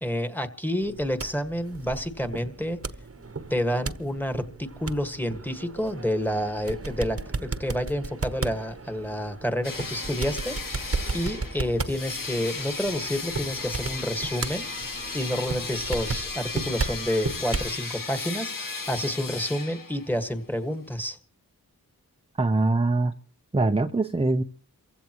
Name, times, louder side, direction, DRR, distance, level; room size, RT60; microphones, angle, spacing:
voice 1, 0.0-2.8 3.5-14.7 15.1-21.2, equal, 5° left, 7 dB, 1.7 m, -29 dB
sound 1, 0.8-17.8, right 3 dB, 40° right, 1.1 m, -35 dB
sound 2, 9.6-20.2, left 4 dB, 60° left, 2.1 m, -35 dB
voice 2, 22.4-23.1 23.5-24.4, right 2 dB, 15° right, 8 dB, 0.7 m, -23 dB
28.5 x 15.5 x 3.1 m, 0.40 s
cardioid pair, 55°, 36 cm